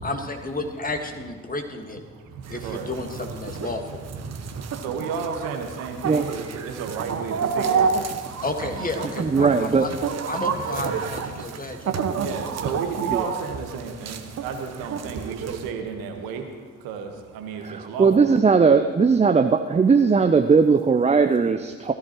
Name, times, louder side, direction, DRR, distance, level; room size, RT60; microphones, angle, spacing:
voice 1, 0.0-2.0 2.5-4.0 8.4-9.9 10.3-12.0, left 2 dB, 25° left, 5 dB, 1.7 m, -31 dB
voice 2, 2.1-3.2 3.5-3.7 4.0-8.8 10.7-18.3 18.7-18.9, right 5 dB, 70° right, 4 dB, 1.5 m, -33 dB
sound 1, 2.4-15.7, right 6 dB, 45° right, 1.1 m, -30 dB
voice 3, 9.2-9.9 13.1-13.3 17.6-21.9, right 5 dB, 20° right, 7 dB, 0.6 m, -18 dB
19.0 x 14.0 x 3.0 m, 1.5 s
figure-of-eight pair, 45°, 37 cm